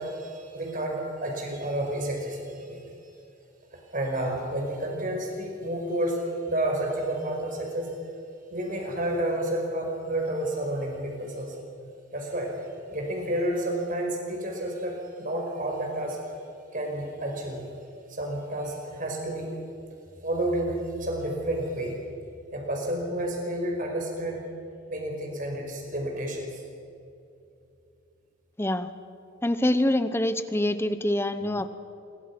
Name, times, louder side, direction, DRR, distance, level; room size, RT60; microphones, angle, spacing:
voice 1, 0.0-2.9 3.7-6.2 6.4-7.9 8.5-11.6 12.1-12.6 12.9-16.2 16.7-17.7 18.1-19.6 20.2-22.0 22.5-24.4 24.9-26.5, right 1 dB, 40° right, 1 dB, 5.2 m, -30 dB
voice 2, 28.6-28.9 29.4-31.7, left 1 dB, 10° left, 11 dB, 0.9 m, -25 dB
27.0 x 23.5 x 6.0 m, 2.6 s
head